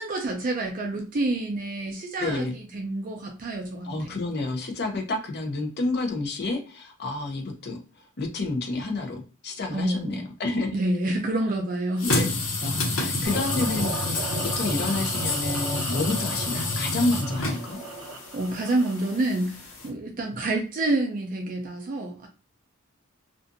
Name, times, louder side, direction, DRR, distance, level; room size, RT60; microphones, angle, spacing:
voice 1, 0.0-4.1 9.7-10.3 10.7-12.2 18.3-22.3, right 2 dB, 40° right, 2 dB, 0.4 m, -28 dB
voice 2, 2.2-2.5 3.8-7.8 8.2-10.8 12.0-12.3 12.6-17.8, left 2 dB, 50° left, 3 dB, 0.7 m, -29 dB
sound 1, 12.0-19.9, left 2 dB, 75° left, 1.2 m, -29 dB
sound 2, 13.2-19.2, right 3 dB, 85° right, 0.6 m, -37 dB
2.5 x 2.4 x 2.5 m, 0.37 s
head